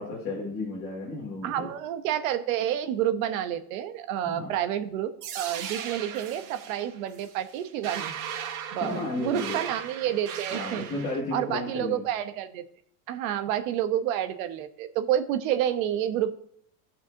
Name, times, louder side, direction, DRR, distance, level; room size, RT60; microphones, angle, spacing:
voice 1, 0.0-1.7 4.2-4.5 8.8-9.6 10.5-12.0, left 2 dB, 20° left, -8 dB, 2.3 m, -33 dB
voice 2, 1.4-8.1 8.7-10.9 11.3-12.7 13.1-16.3, right 11 dB, 60° right, 9 dB, 1.0 m, -29 dB
sound 1, 5.2-11.2, right 9 dB, 80° right, 1.6 m, -37 dB
17.0 x 5.8 x 2.8 m, 0.65 s
supercardioid pair, 175°, 46 cm